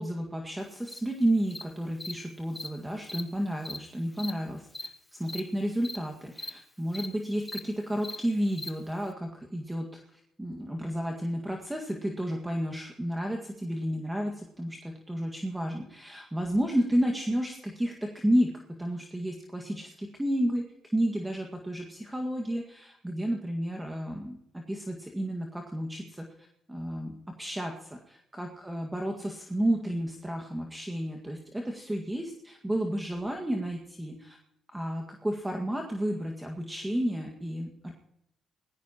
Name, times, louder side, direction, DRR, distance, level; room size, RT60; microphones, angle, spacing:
voice 1, 0.0-4.9 5.2-20.7 20.9-34.4 34.7-37.9, equal, 10° right, 1 dB, 1.9 m, -31 dB
Cricket, 0.9-1.0 1.5-1.6 2.0-2.1 2.6-2.7 3.0-3.2 3.6-3.8 4.2-4.3 4.7-4.9 5.2-5.4 5.8-6.0 6.3-6.5 6.9-7.1 7.4-7.6 8.0-8.2 8.6-8.7, left 2 dB, 15° left, 1.2 m, -38 dB
19.5 x 15.0 x 3.0 m, 0.81 s
cardioid pair, 90°, 0 cm